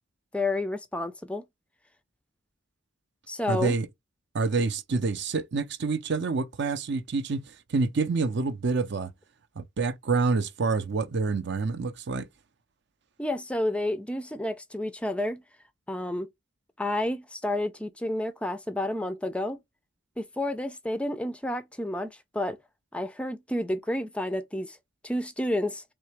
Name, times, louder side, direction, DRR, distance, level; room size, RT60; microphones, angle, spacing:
voice 1, 0.3-1.4 3.3-3.7 13.2-15.4 15.9-16.3 16.8-19.6 20.2-22.6 22.9-24.8 25.0-25.8, left 1 dB, 5° left, 0.4 m, -30 dB
voice 2, 3.5-3.9 4.3-7.4 7.7-9.1 9.6-12.3, right 4 dB, 55° right, 0.5 m, -27 dB
3.8 x 3.1 x 3.2 m
head